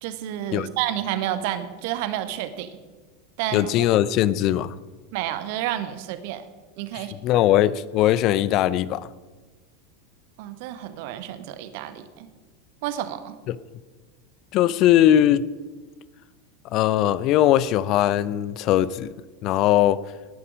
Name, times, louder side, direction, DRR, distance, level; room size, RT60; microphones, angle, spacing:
voice 1, 0.0-2.8 3.4-3.7 5.1-6.4 6.8-7.1 10.4-12.3 12.8-13.4, right 12 dB, 55° right, 11 dB, 1.3 m, -30 dB
voice 2, 3.5-4.8 6.9-9.1 13.5-13.6 14.5-15.4 16.7-19.1 19.4-20.0, left 12 dB, 45° left, 18 dB, 0.6 m, -20 dB
19.0 x 11.0 x 5.1 m, 1.3 s
figure-of-eight pair, 85°, 0 cm